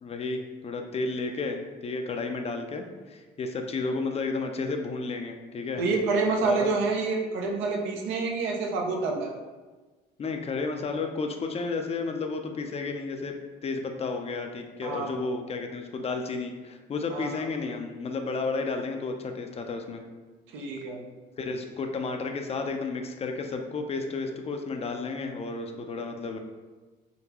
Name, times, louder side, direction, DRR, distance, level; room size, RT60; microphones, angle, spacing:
voice 1, 0.0-5.8 6.4-6.7 10.2-13.4 13.6-20.0 21.4-26.4, left 3 dB, 30° left, 4 dB, 0.4 m, -32 dB
voice 2, 5.8-9.3 14.8-15.2 17.1-17.5 20.5-21.0, right 3 dB, 90° right, 2 dB, 0.6 m, -28 dB
3.7 x 2.2 x 2.8 m, 1.3 s
cardioid pair, 90°, 19 cm